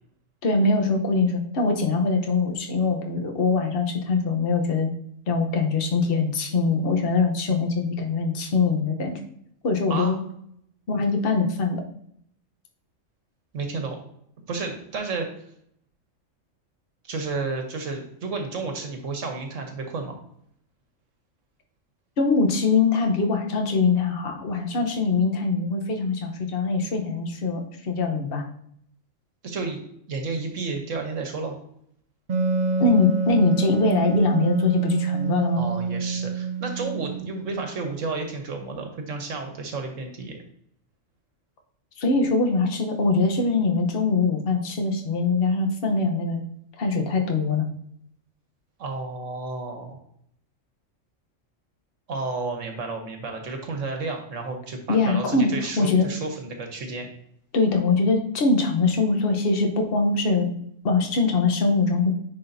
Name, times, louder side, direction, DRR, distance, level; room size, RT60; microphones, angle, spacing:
voice 1, 0.4-4.9 5.3-9.2 9.6-10.2 10.9-11.8 22.2-28.4 32.8-35.6 42.0-46.4 46.8-47.7 54.9-56.1 57.5-60.5 60.8-62.1, left 3 dB, 50° left, 3 dB, 1.1 m, -23 dB
voice 2, 9.9-10.2 13.5-14.0 14.5-15.3 17.0-20.2 29.4-29.8 30.1-31.6 35.5-40.4 48.8-50.0 52.1-57.1, right 3 dB, 70° right, 4 dB, 1.3 m, -31 dB
Wind instrument woodwind instrument, 32.3-37.7, right 5 dB, 50° right, 0.5 m, -26 dB
9.8 x 4.1 x 2.6 m, 0.69 s
omnidirectional pair, 1.4 m